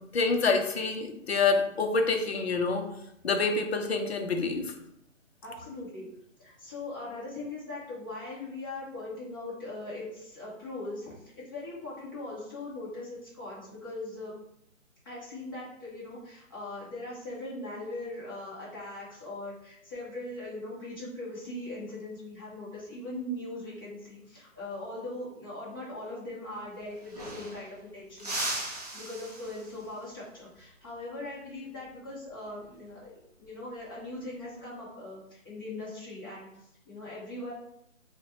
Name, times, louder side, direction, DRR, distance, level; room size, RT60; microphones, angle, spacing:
voice 1, 0.1-2.9 3.2-4.7, left 4 dB, 50° left, 5 dB, 0.5 m, -27 dB
voice 2, 5.4-6.1 6.4-14.3 15.0-28.5 28.9-33.1 33.4-37.5, left 2 dB, 15° left, -9 dB, 0.7 m, -40 dB
sound 1, 26.6-26.7 26.9-27.8 28.2-29.9 32.4-32.7 34.1-34.6, right 2 dB, 30° right, 0.5 m, -37 dB
4.0 x 2.1 x 2.9 m, 0.78 s
hypercardioid pair, 165°, 40 cm